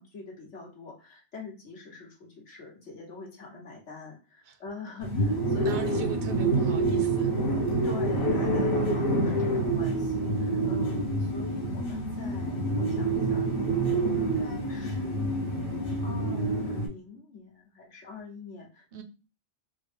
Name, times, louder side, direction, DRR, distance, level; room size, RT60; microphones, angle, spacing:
voice 1, 0.0-5.8 7.8-13.6 14.0-15.4 16.0-18.8, left 3 dB, 80° left, -2 dB, 1.5 m, -44 dB
sound 1, 5.0-16.9, right 2 dB, 55° left, 1.1 m, -27 dB
voice 2, 5.6-7.3 18.9-19.0, right 5 dB, 55° right, 6 dB, 0.6 m, -39 dB
3.6 x 2.2 x 3.3 m, 0.32 s
omnidirectional pair, 1.2 m